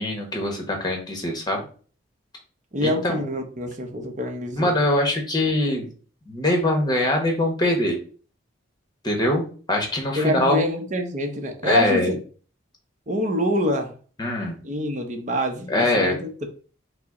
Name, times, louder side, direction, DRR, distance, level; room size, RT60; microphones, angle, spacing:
voice 1, 0.0-1.7 2.8-3.2 4.5-5.9 6.3-8.0 9.0-10.6 11.6-12.1 14.2-14.6 15.7-16.2, left 1 dB, 20° left, 2 dB, 1.0 m, -23 dB
voice 2, 2.7-4.7 10.2-12.2 13.1-13.9 14.6-16.5, equal, 40° right, 4 dB, 0.7 m, -25 dB
5.6 x 2.1 x 3.7 m, 0.40 s
head